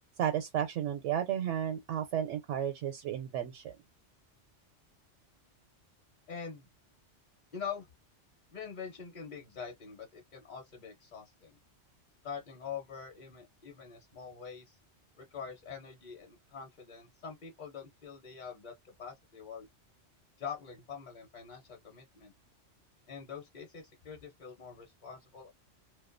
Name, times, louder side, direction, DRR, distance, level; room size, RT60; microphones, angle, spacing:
voice 1, 0.2-3.7, right 10 dB, 85° right, 0.9 m, -33 dB
voice 2, 6.3-6.7 7.5-7.9 8.5-11.6 12.2-14.8 15.2-19.7 20.4-22.3 23.1-25.5, left 6 dB, 45° left, 0.7 m, -44 dB
2.3 x 2.2 x 2.4 m
omnidirectional pair, 1.2 m